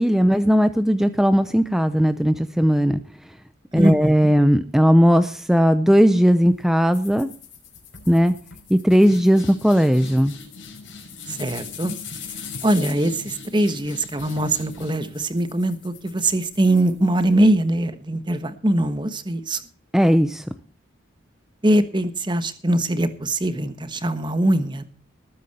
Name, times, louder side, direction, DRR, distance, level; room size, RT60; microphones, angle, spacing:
voice 1, 0.0-3.0 3.7-7.3 8.1-8.3 8.7-10.3 19.9-20.4, equal, ahead, 10 dB, 0.6 m, -17 dB
voice 2, 3.7-4.3 11.3-12.0 12.6-19.6 21.6-24.8, right 1 dB, 20° right, 11 dB, 1.3 m, -22 dB
sound 1, 6.9-17.5, left 5 dB, 65° left, 5.8 m, -40 dB
19.5 x 9.4 x 4.3 m, 0.41 s
head